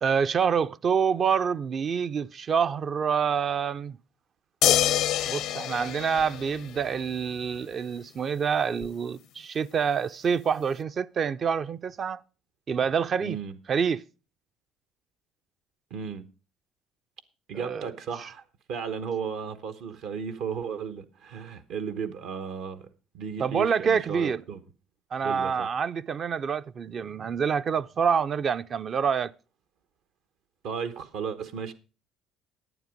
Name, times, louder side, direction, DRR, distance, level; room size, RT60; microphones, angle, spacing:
voice 1, 0.0-4.0 5.3-12.2 12.7-13.4 13.7-14.0 17.5-17.9 23.4-24.4 25.1-29.3, right 6 dB, 45° right, 0.5 m, -27 dB
sound 1, 4.6-7.1 8.8-8.9, left 12 dB, 70° left, 0.6 m, -26 dB
voice 2, 13.2-13.6 15.9-16.2 17.5-18.4 18.7-22.9 23.1-24.6 25.2-25.7 30.6-31.7, right 6 dB, 75° right, 1.1 m, -34 dB
11.0 x 8.9 x 5.1 m
supercardioid pair, 85°, 0 cm